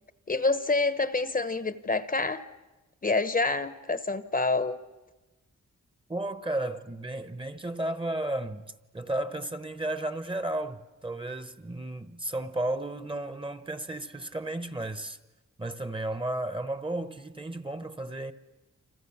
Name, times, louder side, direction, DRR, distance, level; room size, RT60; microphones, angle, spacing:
voice 1, 0.3-2.5 3.0-4.8, left 3 dB, 30° left, 0.8 m, -27 dB
voice 2, 6.1-8.6 8.9-15.2 15.6-18.3, right 1 dB, 15° right, 1.0 m, -33 dB
29.5 x 26.5 x 7.2 m
wide cardioid pair, 140°, 30 cm